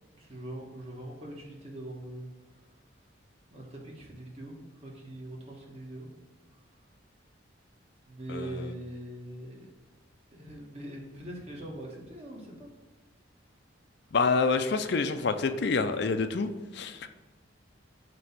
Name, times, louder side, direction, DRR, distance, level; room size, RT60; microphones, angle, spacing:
voice 1, 0.2-2.3 3.5-6.1 8.1-9.7 10.3-12.7, right 1 dB, 30° right, -2 dB, 1.4 m, -42 dB
voice 2, 8.3-8.7 14.1-17.1, left 4 dB, 55° left, 9 dB, 0.4 m, -27 dB
7.5 x 3.0 x 5.9 m, 1.2 s
head